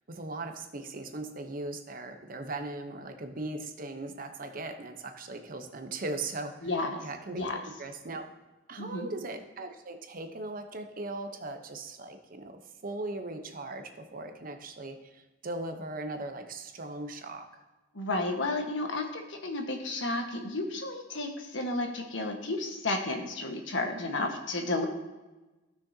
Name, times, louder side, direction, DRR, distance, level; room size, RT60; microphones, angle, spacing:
voice 1, 0.1-6.5 7.0-7.5 7.8-8.2 8.7-17.5 24.2-24.3, right 2 dB, 50° right, 6 dB, 0.9 m, -39 dB
voice 2, 6.6-7.1 7.3-7.6 8.8-9.1 17.9-24.9, left 2 dB, 80° left, 3 dB, 1.4 m, -32 dB
15.5 x 6.3 x 2.8 m, 1.1 s
head